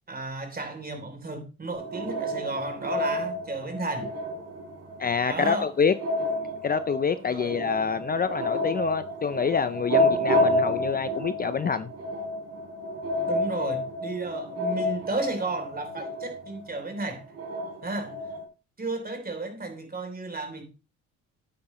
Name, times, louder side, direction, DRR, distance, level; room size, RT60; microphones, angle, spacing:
voice 1, 0.1-4.2 5.2-5.7 7.1-7.5 13.2-17.2 17.8-18.1 18.8-20.6, right 3 dB, 30° right, 3.2 m, -33 dB
sound 1, 1.7-18.4, left 1 dB, 55° right, 3.8 m, -30 dB
voice 2, 5.0-5.9 6.6-11.9, left 6 dB, 30° left, 0.5 m, -26 dB
9.7 x 8.8 x 3.0 m
cardioid pair, 90°, 30 cm